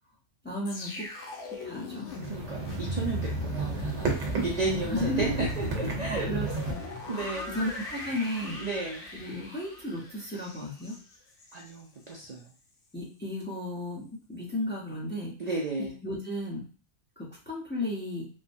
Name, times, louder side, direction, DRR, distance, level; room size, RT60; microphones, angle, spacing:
voice 1, 0.4-1.1 1.6-2.1 3.3-3.4 4.9-5.4 6.3-6.8 7.1-8.6 9.1-10.9 12.9-15.3 15.8-16.6 17.2-18.3, left 1 dB, 10° left, -5 dB, 0.6 m, -34 dB
sound 1, 0.7-11.8 12.1-12.3, left 1 dB, 75° left, 1.0 m, -39 dB
sound 2, 2.1-6.7, right 2 dB, 70° right, 1.1 m, -33 dB
voice 2, 2.3-6.3 7.1-7.6 8.6-9.1 11.5-12.5 15.4-15.9, right 3 dB, 50° right, -1 dB, 0.5 m, -33 dB
3.1 x 2.2 x 2.6 m, 0.38 s
omnidirectional pair, 1.3 m